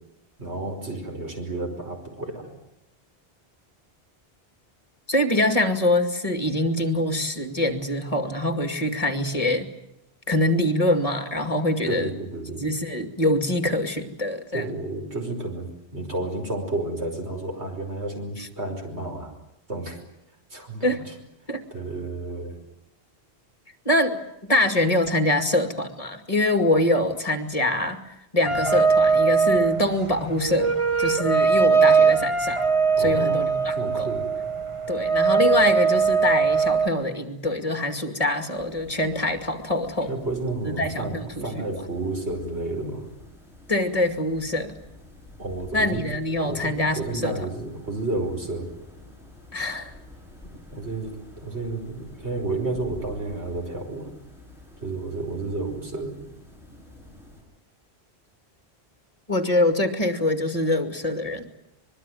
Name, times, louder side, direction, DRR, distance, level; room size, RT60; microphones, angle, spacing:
voice 1, 0.4-2.5 11.9-12.6 14.5-19.3 19.7-20.0 20.5-21.0 21.7-22.6 33.0-33.5 33.8-34.2 40.1-43.0 45.4-46.0 46.4-48.7 50.4-54.1 54.8-56.1, right 2 dB, 85° right, 3 dB, 5.7 m, -31 dB
voice 2, 5.1-9.7 10.3-12.1 12.6-14.7 18.4-18.5 20.8-21.0 21.5-21.6 23.9-28.0 28.3-32.6 33.0-34.1 34.9-40.1 40.6-41.8 43.7-44.7 45.7-47.4 49.5-49.9 59.3-61.5, left 1 dB, 35° left, 7 dB, 2.4 m, -24 dB
sound 1, 28.4-36.9, right 5 dB, 30° right, 1.2 m, -21 dB
sound 2, 38.5-57.4, left 1 dB, ahead, 7.6 m, -48 dB
25.0 x 22.0 x 9.3 m, 0.82 s
omnidirectional pair, 1.1 m